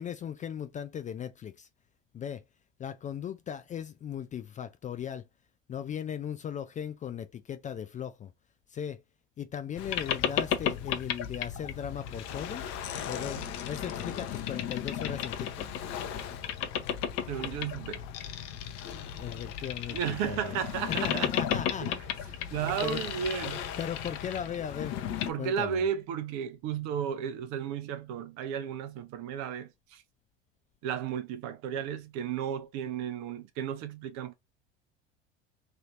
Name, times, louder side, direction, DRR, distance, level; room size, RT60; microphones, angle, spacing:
voice 1, 0.0-1.7 2.1-2.4 2.8-5.2 5.7-8.3 8.7-9.0 9.4-12.7 13.1-15.7 19.1-20.5 21.0-23.0 23.5-25.0 25.4-25.8, left 9 dB, 25° left, 0.4 m, -38 dB
Boat Water vehicle, 9.8-25.3, left 9 dB, 50° left, 0.8 m, -34 dB
voice 2, 17.3-18.0 19.9-21.3 21.8-21.9 22.5-23.7 25.3-30.0 30.8-34.3, right 8 dB, 55° right, 0.8 m, -34 dB
3.4 x 2.7 x 2.4 m
hypercardioid pair, 80°, 34 cm